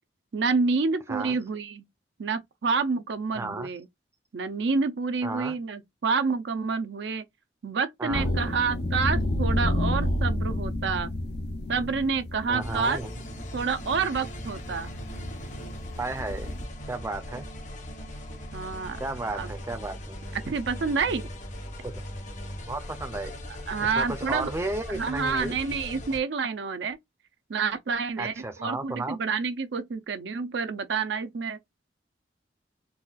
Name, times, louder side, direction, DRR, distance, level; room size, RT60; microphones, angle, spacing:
voice 1, 0.3-1.9 2.2-3.9 4.3-7.2 7.6-11.1 11.7-13.0 13.5-14.9 18.5-19.0 19.3-19.5 20.5-21.3 23.7-24.5 24.9-27.0 27.5-28.3 28.6-31.6, right 5 dB, 70° right, 0.5 m, -28 dB
voice 2, 3.3-3.7 5.2-5.6 8.0-8.4 12.5-13.1 16.0-16.5 16.9-17.5 19.0-20.2 21.8-21.9 22.6-23.4 23.8-25.6 28.2-29.2, right 2 dB, 15° right, 0.5 m, -33 dB
sound 1, 8.1-16.6, left 1 dB, 60° left, 0.6 m, -30 dB
sound 2, 12.6-26.2, equal, 40° left, 1.0 m, -39 dB
4.0 x 2.3 x 2.3 m
head